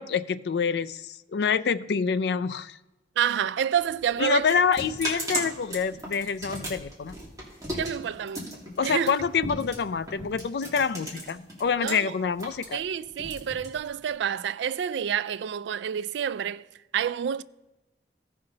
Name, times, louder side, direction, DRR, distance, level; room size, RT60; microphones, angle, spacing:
voice 1, 0.0-2.8 4.2-7.2 8.8-12.8, left 6 dB, 70° left, 0.4 m, -27 dB
voice 2, 3.2-4.5 7.8-8.5 8.8-9.1 11.8-12.1 12.7-16.7 16.9-17.4, right 8 dB, 85° right, 0.3 m, -28 dB
sound 1, 3.7-11.9 12.2-14.2, right 1 dB, 20° right, 2.1 m, -36 dB
15.5 x 5.7 x 3.8 m
head